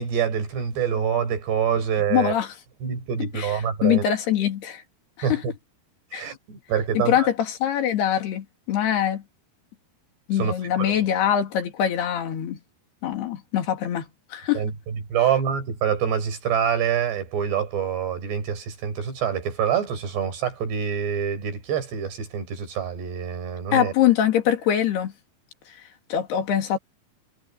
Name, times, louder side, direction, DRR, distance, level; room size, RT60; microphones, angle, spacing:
voice 1, 0.0-2.4 2.8-4.0 5.2-5.5 6.1-7.3 10.4-10.9 14.5-14.7 15.1-23.9, right 8 dB, 80° right, 6.8 m, -26 dB
voice 2, 2.1-2.5 3.2-4.8 5.2-5.4 6.1-6.3 6.9-9.2 10.3-12.6 13.0-14.6 23.7-25.1 26.1-26.8, left 10 dB, 75° left, 4.5 m, -23 dB
omnidirectional pair, 4.8 m